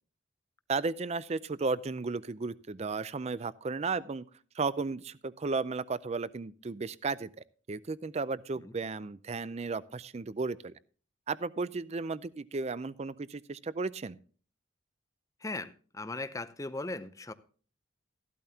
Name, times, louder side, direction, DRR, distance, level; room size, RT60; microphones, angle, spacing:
voice 1, 0.7-4.3 4.5-7.3 7.7-10.7 11.3-14.2, right 4 dB, 35° right, 17 dB, 0.4 m, -34 dB
voice 2, 15.4-17.3, left 2 dB, 15° left, 13 dB, 0.6 m, -38 dB
14.0 x 12.5 x 2.8 m, 0.41 s
head